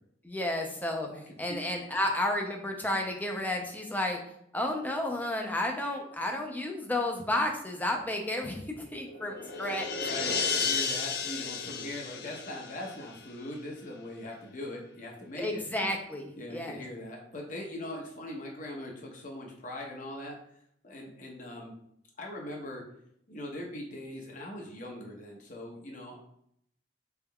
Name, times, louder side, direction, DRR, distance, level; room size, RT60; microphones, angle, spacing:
voice 1, 0.2-1.1 1.4-4.2 4.5-8.6 8.9-9.9 15.4-16.8, left 1 dB, 10° left, 2 dB, 0.6 m, -32 dB
sound 1, 8.8-13.4, left 5 dB, 65° left, 0.5 m, -33 dB
voice 2, 10.0-15.6 16.4-20.4 20.8-21.7 22.2-22.8 23.3-26.2, left 1 dB, 45° left, 0 dB, 0.9 m, -41 dB
4.0 x 3.5 x 2.3 m, 0.72 s
head